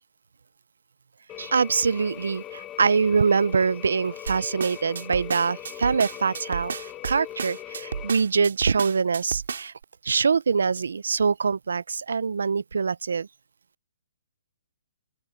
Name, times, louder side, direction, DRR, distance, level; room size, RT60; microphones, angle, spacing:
sound 1, 1.3-8.1, left 13 dB, 15° left, 1.4 m, -40 dB
voice 1, 1.4-6.8 7.0-9.7 10.0-13.3, right 5 dB, 90° right, 0.6 m, -24 dB
sound 2, 4.3-9.8, right 6 dB, 70° right, 3.8 m, -33 dB
open air
hypercardioid pair, 175°, 0 cm